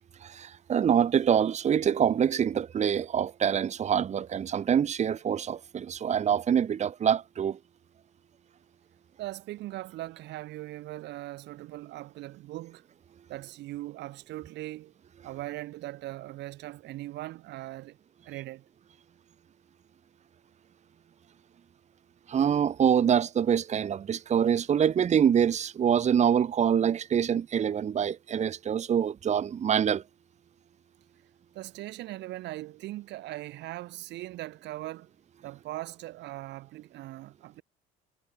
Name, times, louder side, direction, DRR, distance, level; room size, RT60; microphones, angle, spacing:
voice 1, 0.2-7.6 22.3-30.0, right 8 dB, 40° right, 1.9 m, -25 dB
voice 2, 9.2-12.9 13.3-14.9 15.2-18.0 18.3-18.7 31.5-35.1 35.4-37.6, right 16 dB, 70° right, 2.3 m, -40 dB
cardioid pair, 115°, 19 cm